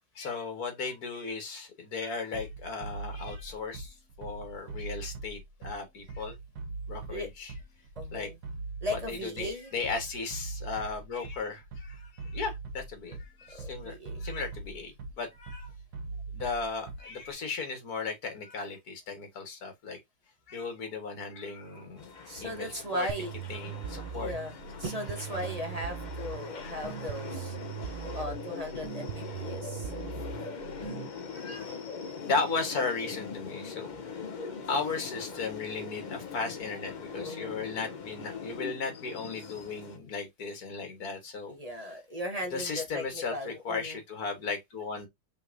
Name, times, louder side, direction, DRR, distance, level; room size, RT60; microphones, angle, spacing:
voice 1, 0.2-6.4 6.9-7.5 8.1-8.3 8.9-13.9 14.2-14.9 15.2-15.7 16.3-20.0 20.5-22.1 22.4-23.1 23.5-24.3 26.6-26.7 31.3-31.7 32.2-34.2 34.7-41.6 42.5-45.1, left 4 dB, 70° left, 2.0 m, -36 dB
Bass drum, 2.3-17.3, right 3 dB, 90° right, 1.8 m, -41 dB
voice 2, 8.0-8.4 8.8-9.7 13.5-14.2 22.3-23.3 24.0-27.6 28.1-29.9 37.2-37.6 41.5-44.0, equal, 30° right, 0.8 m, -37 dB
sound 1, 22.0-40.0, left 5 dB, 45° left, 0.6 m, -41 dB
sound 2, 23.1-31.1, right 9 dB, 70° right, 0.7 m, -40 dB
5.6 x 3.6 x 2.6 m
omnidirectional pair, 1.7 m